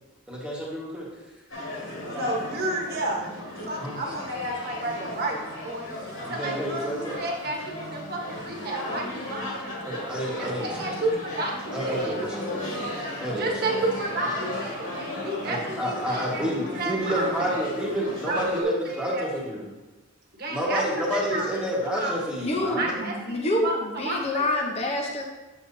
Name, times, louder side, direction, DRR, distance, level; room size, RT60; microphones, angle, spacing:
voice 1, 0.3-1.0 2.1-2.3 2.8-2.9 3.8-4.0 4.8-5.4 6.2-7.2 9.9-11.0 11.7-12.7 13.2-13.9 15.4-19.7 20.5-23.0, equal, 5° right, -6 dB, 1.5 m, -30 dB
sound 1, 1.5-18.6, left 1 dB, 65° left, 2.3 m, -36 dB
voice 2, 2.1-3.3 3.7-5.9 6.3-10.0 10.4-12.1 13.3-16.4 16.7-17.4 18.3-18.7 19.1-19.2 20.3-20.8 21.1-21.4 21.9-22.1 22.6-23.8 24.0-24.4, right 2 dB, 45° right, 0 dB, 1.3 m, -31 dB
voice 3, 22.4-25.2, left 1 dB, 30° left, 0 dB, 0.8 m, -27 dB
7.7 x 7.3 x 2.7 m, 1.2 s
head